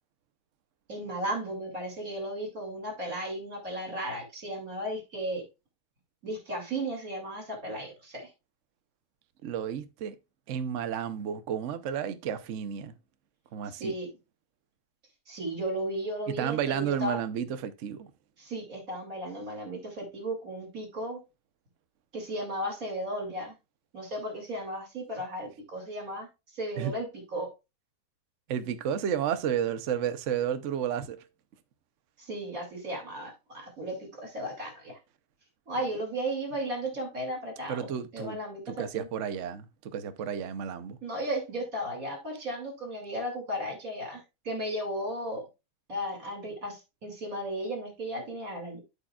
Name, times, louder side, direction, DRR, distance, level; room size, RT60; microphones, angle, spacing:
voice 1, 0.9-5.4 6.2-8.3 13.7-14.1 15.3-17.2 18.4-21.2 22.1-23.5 23.9-26.3 26.5-27.5 32.2-35.0 35.7-37.8 38.1-39.1 41.0-45.5 45.9-48.8, right 1 dB, 40° right, 3.0 m, -35 dB
voice 2, 9.4-10.2 10.5-12.9 13.5-13.9 16.3-18.1 26.8-26.9 28.5-31.2 37.7-38.4 38.7-41.0, right 8 dB, 80° right, 0.6 m, -32 dB
12.5 x 5.2 x 2.3 m
omnidirectional pair, 2.3 m